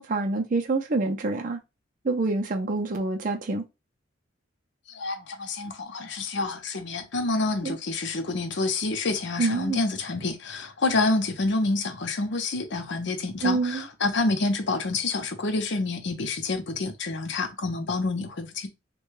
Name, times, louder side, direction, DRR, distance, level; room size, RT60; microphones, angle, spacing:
voice 1, 0.0-1.6 2.0-3.6 7.6-7.8 9.4-9.8 13.4-13.9, right 3 dB, 40° right, 0.5 m, -26 dB
voice 2, 4.9-18.7, left 3 dB, 55° left, 0.6 m, -28 dB
3.3 x 2.2 x 3.1 m
head